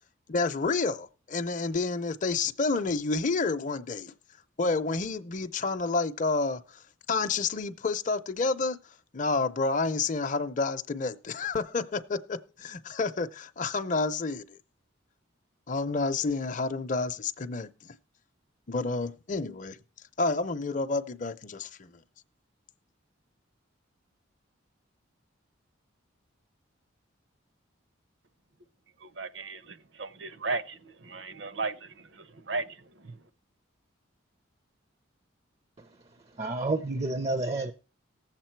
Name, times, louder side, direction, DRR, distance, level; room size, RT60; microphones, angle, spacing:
voice 1, 0.3-4.1 4.6-6.8 7.1-8.8 9.1-14.6 15.7-17.9 18.7-19.8 20.2-21.9, left 3 dB, 40° left, 0.6 m, -29 dB
voice 2, 29.0-33.2, right 3 dB, 60° right, 0.7 m, -36 dB
voice 3, 35.8-37.7, right 2 dB, 30° right, 0.5 m, -31 dB
17.5 x 7.4 x 4.5 m
head